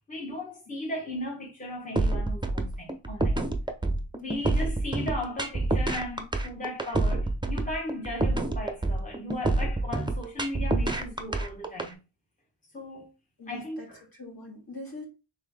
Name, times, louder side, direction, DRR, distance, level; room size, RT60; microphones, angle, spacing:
voice 1, 0.1-3.5 4.2-12.0 12.7-13.1 13.5-14.0, left 1 dB, 15° left, 1.1 m, -36 dB
sound 1, 2.0-11.9, right 2 dB, 10° right, 0.6 m, -27 dB
voice 2, 13.4-13.9 14.2-15.0, left 2 dB, 45° left, 1.9 m, -42 dB
3.8 x 3.5 x 3.5 m
wide cardioid pair, 55°, 47 cm